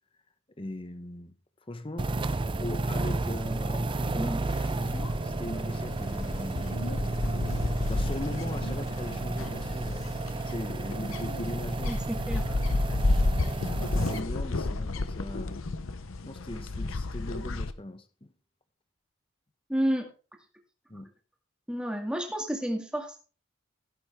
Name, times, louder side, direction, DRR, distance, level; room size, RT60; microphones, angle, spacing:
voice 1, 0.6-1.4 1.7-2.1 2.6-7.5 7.9-10.1 10.4-12.0 13.7-15.7 16.2-18.3 20.9-21.1, left 1 dB, 25° left, 1.0 m, -39 dB
sound 1, 2.0-14.2, right 2 dB, 25° right, 0.4 m, -32 dB
voice 2, 4.2-4.5 11.9-12.5 19.7-20.1 21.7-23.2, equal, 5° right, 2.0 m, -30 dB
sound 2, 4.5-17.7, left 2 dB, 75° left, 0.8 m, -32 dB
16.0 x 7.9 x 3.6 m
head